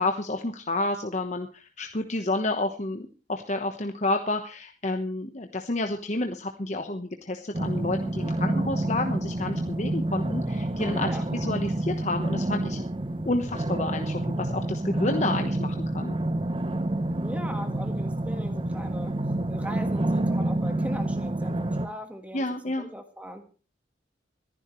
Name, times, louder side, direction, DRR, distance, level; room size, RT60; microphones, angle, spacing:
voice 1, 0.0-12.8 13.2-16.2 22.3-22.9, left 2 dB, 40° left, 5 dB, 1.1 m, -30 dB
sound 1, 7.5-21.9, right 1 dB, 30° right, 0.8 m, -28 dB
voice 2, 17.2-19.1 19.5-23.4, equal, 5° right, 7 dB, 1.5 m, -39 dB
25.5 x 11.0 x 3.1 m, 0.36 s
head